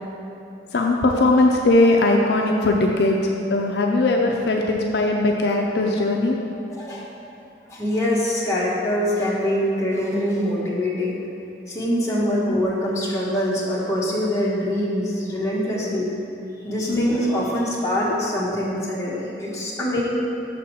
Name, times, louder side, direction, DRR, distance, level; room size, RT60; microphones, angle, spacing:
voice 1, 0.7-6.4 16.9-17.1, left 2 dB, 65° left, 0 dB, 0.5 m, -19 dB
voice 2, 6.7-7.0 7.7-11.2 11.7-16.1 16.6-20.0, equal, 15° left, -6 dB, 1.1 m, -24 dB
6.0 x 4.2 x 6.3 m, 2.8 s
head